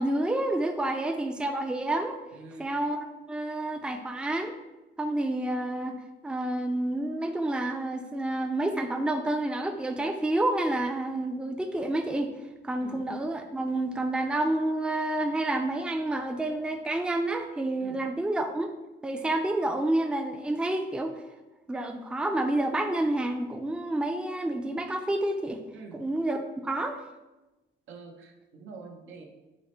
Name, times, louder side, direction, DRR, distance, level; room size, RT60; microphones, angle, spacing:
voice 1, 0.0-2.2 2.6-4.5 5.0-6.0 6.2-12.3 12.6-18.7 19.0-21.2 21.7-25.6 25.9-26.4 26.6-27.0, right 1 dB, 5° right, 6 dB, 0.4 m, -29 dB
voice 2, 2.3-2.7 12.8-13.1 17.8-18.0 25.7-26.1 27.9-29.3, right 3 dB, 85° right, 3 dB, 0.7 m, -46 dB
5.8 x 2.1 x 4.3 m, 1.0 s
cardioid pair, 90°, 20 cm